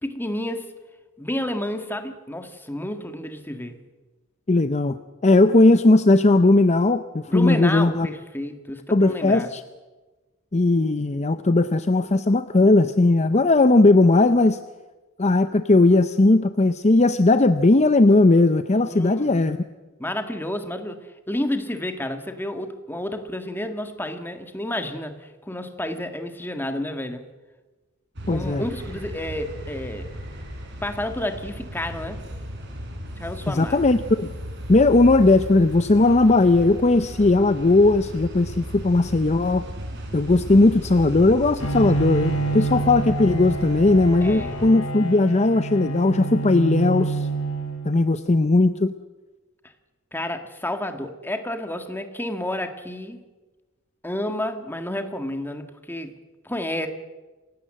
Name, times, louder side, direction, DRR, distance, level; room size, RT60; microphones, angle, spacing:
voice 1, 0.0-0.7 1.2-3.8 7.3-9.5 18.8-19.5 20.0-27.3 28.3-30.1 30.8-32.2 33.2-33.8 44.2-44.6 50.1-53.2 54.0-56.1 56.4-56.9, left 1 dB, 10° left, 7 dB, 1.7 m, -30 dB
voice 2, 4.5-5.0 5.2-8.1 8.9-9.6 10.5-14.6 15.2-19.6 28.3-28.6 33.5-34.3 34.7-39.6 40.1-47.3 47.8-48.9, left 2 dB, 35° left, 11 dB, 0.7 m, -18 dB
sound 1, 28.2-44.7, right 1 dB, 60° right, 5.1 m, -36 dB
Bowed string instrument, 41.6-48.3, right 3 dB, 90° left, 5.5 m, -28 dB
28.0 x 16.5 x 7.7 m, 1.2 s
head